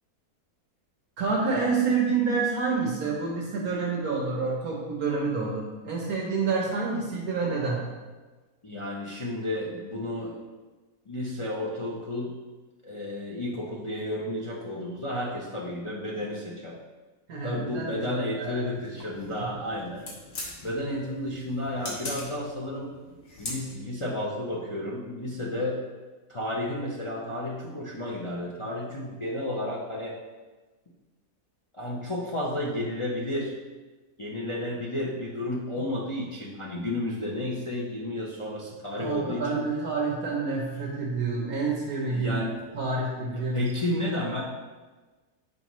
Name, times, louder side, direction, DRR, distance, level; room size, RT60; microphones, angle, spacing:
voice 1, 1.2-7.8 17.3-18.1 18.4-18.7 19.4-19.5 39.0-42.4 42.7-43.7, right 4 dB, 70° right, -3 dB, 1.3 m, -28 dB
voice 2, 8.6-10.4 11.1-12.3 12.8-16.8 17.4-20.1 20.6-22.9 23.4-25.8 26.3-30.2 31.7-33.6 34.2-39.6 42.1-42.5 43.3-44.4, left 1 dB, 35° left, -4 dB, 0.4 m, -32 dB
sound 1, 18.7-24.0, left 2 dB, 85° left, 1.8 m, -41 dB
7.6 x 4.7 x 3.0 m, 1.3 s
omnidirectional pair, 1.6 m